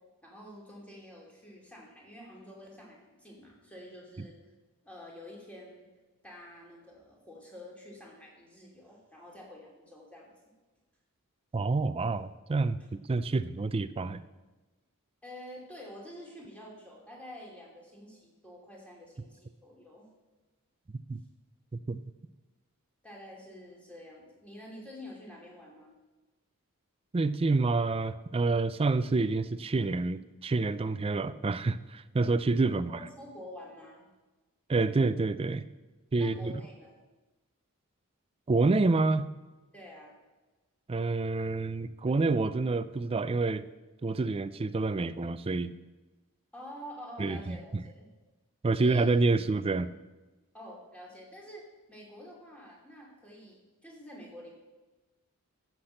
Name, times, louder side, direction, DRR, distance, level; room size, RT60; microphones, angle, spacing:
voice 1, 0.2-4.3 4.8-5.9 6.2-10.3 15.2-20.1 23.0-26.0 32.7-34.1 36.2-37.0 39.7-40.1 46.5-48.1 48.7-49.0 50.5-54.5, left 1 dB, 5° left, -3 dB, 2.9 m, -48 dB
voice 2, 11.5-14.2 21.1-21.2 21.9-22.0 27.1-32.9 34.7-35.7 36.1-36.5 38.5-39.3 40.9-43.6 44.0-45.7 47.2-47.8 48.6-49.9, right 3 dB, 25° right, 14 dB, 0.4 m, -28 dB
14.5 x 6.0 x 6.5 m, 1.2 s
head